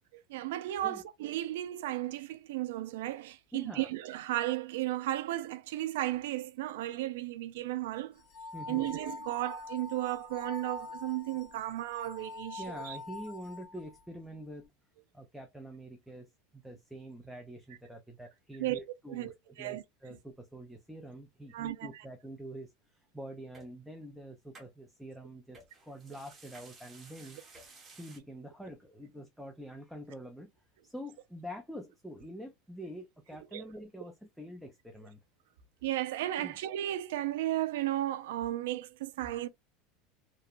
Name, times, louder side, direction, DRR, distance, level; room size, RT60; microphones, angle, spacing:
voice 1, 0.3-8.2 8.7-13.0 18.6-18.8 19.1-19.3 19.6-19.8 21.5-21.9 33.5-33.6 35.8-39.5, right 15 dB, 85° right, 0.3 m, -34 dB
voice 2, 3.5-3.9 8.5-9.0 12.6-14.7 15.1-16.3 16.5-22.7 23.1-27.5 27.9-30.5 30.8-35.2 36.4-36.6, equal, ahead, 0.4 m, -46 dB
sound 1, 8.2-14.0, left 4 dB, 50° left, 1.7 m, -45 dB
sound 2, 23.5-23.7 24.5-24.7 25.5-28.2, right 3 dB, 20° right, 0.9 m, -54 dB
3.0 x 2.1 x 2.4 m
supercardioid pair, 140°, 0 cm